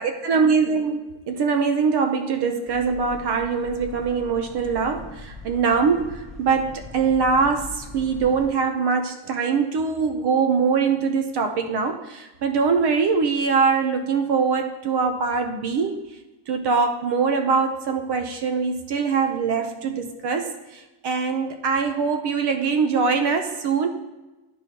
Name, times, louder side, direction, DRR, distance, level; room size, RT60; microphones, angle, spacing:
voice 1, 0.0-16.0 16.5-23.9, right 5 dB, 55° right, 6 dB, 0.6 m, -23 dB
sound 1, 2.7-8.5, left 2 dB, ahead, 0.7 m, -41 dB
11.0 x 4.8 x 2.8 m, 1.1 s
cardioid pair, 180°, 49 cm